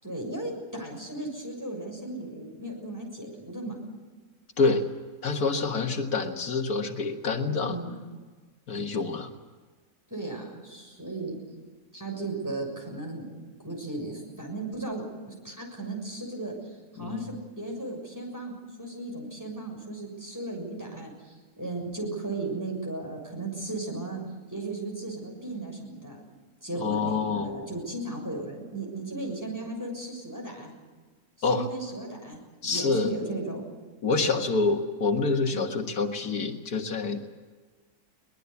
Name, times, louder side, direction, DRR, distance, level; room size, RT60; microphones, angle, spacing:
voice 1, 0.0-3.8 5.5-5.8 7.6-8.0 10.1-11.4 11.9-13.3 13.6-24.2 24.5-26.2 26.6-30.7 31.4-33.7 35.5-35.7, right 2 dB, 10° right, 0 dB, 6.6 m, -36 dB
voice 2, 5.2-7.8 8.7-9.3 17.0-17.3 26.8-27.7 31.4-31.7 32.6-33.1 34.0-37.2, left 4 dB, 75° left, 4 dB, 2.0 m, -27 dB
23.0 x 20.0 x 8.3 m, 1.4 s
omnidirectional pair, 1.6 m